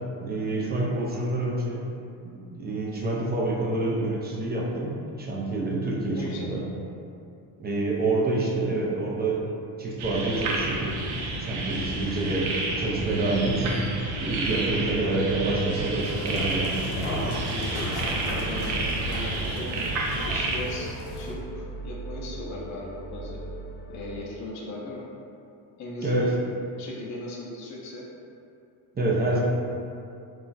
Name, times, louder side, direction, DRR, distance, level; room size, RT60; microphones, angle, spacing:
voice 1, 0.2-1.8 2.2-6.7 7.6-9.5 9.8-11.0 11.4-13.9 14.2-17.0 26.0-26.3 29.0-29.4, right 2 dB, 25° right, -4 dB, 0.3 m, -27 dB
voice 2, 6.1-6.5 17.2-18.0 18.3-19.9 20.2-23.4 23.9-25.1 25.8-26.3 26.8-28.0 29.2-29.4, left 2 dB, 35° left, -4 dB, 0.5 m, -38 dB
sound 1, 10.0-20.6, right 2 dB, 75° right, 0.6 m, -30 dB
sound 2, 12.7-24.2, right 3 dB, 85° left, 0.6 m, -40 dB
sound 3, 16.0-21.3, equal, 60° left, 1.0 m, -35 dB
2.3 x 2.0 x 3.8 m, 2.6 s
cardioid pair, 95°, 48 cm